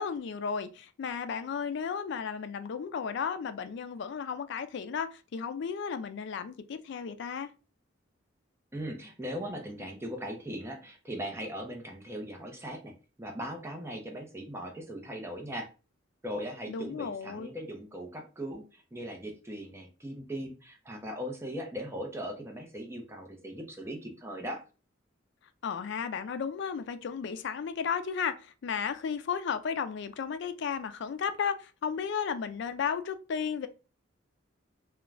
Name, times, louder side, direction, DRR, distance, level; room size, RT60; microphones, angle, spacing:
voice 1, 0.0-7.5 16.7-17.5 25.6-33.7, left 6 dB, 60° left, 0.3 m, -34 dB
voice 2, 8.7-12.9 13.2-15.7 16.2-24.6, equal, 15° right, 0.5 m, -39 dB
2.4 x 2.2 x 3.2 m
head